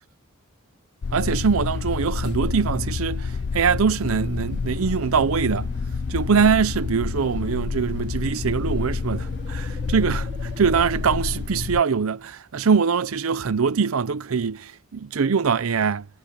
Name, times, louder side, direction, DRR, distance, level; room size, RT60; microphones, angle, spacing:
sound 1, 1.0-11.8, left 5 dB, 55° left, 0.4 m, -28 dB
voice 1, 1.1-5.7 6.1-16.1, right 6 dB, 75° right, 0.6 m, -23 dB
sound 2, 4.0-11.4, right 1 dB, 40° right, 2.3 m, -44 dB
head